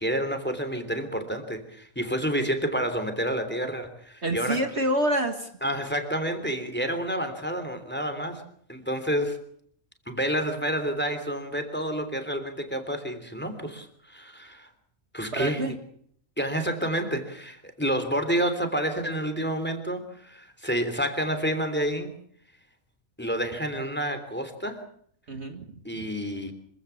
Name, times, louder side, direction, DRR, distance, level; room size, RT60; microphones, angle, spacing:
voice 1, 0.0-4.6 5.6-8.4 8.7-9.4 10.1-14.7 15.1-15.7 16.4-22.1 23.2-24.8 25.8-26.5, equal, 5° left, 8 dB, 3.3 m, -29 dB
voice 2, 4.2-5.5 15.3-15.7 25.3-25.7, right 1 dB, 50° right, 6 dB, 2.0 m, -27 dB
26.0 x 16.5 x 7.2 m, 0.64 s
omnidirectional pair, 1.5 m